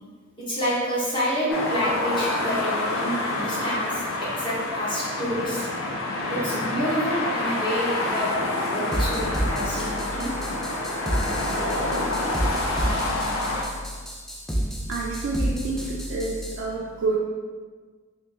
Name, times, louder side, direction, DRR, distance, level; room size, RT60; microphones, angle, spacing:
voice 1, 0.4-5.7 6.3-8.3 8.7-10.3, equal, 25° left, -8 dB, 0.8 m, -28 dB
sound 1, 1.5-13.7, left 2 dB, 85° left, 0.5 m, -27 dB
sound 2, 8.9-16.6, equal, ahead, 0.3 m, -30 dB
voice 2, 14.9-17.2, right 3 dB, 75° right, -3 dB, 0.4 m, -28 dB
3.0 x 2.8 x 3.3 m, 1.5 s
head